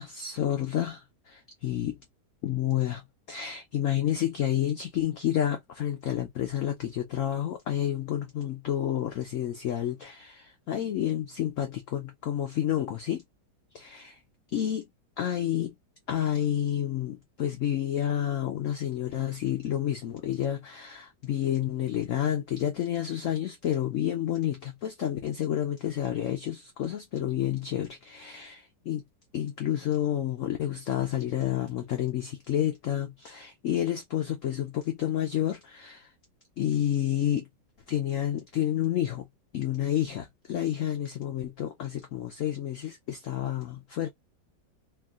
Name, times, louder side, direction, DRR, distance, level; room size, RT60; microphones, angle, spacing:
voice 1, 0.0-2.0 2.4-3.0 3.3-13.2 13.7-14.2 14.5-14.9 15.2-15.8 16.1-29.0 29.3-36.1 36.6-37.5 37.9-39.3 39.5-44.1, left 11 dB, 85° left, 0.6 m, -30 dB
3.6 x 2.4 x 2.3 m
omnidirectional pair, 2.0 m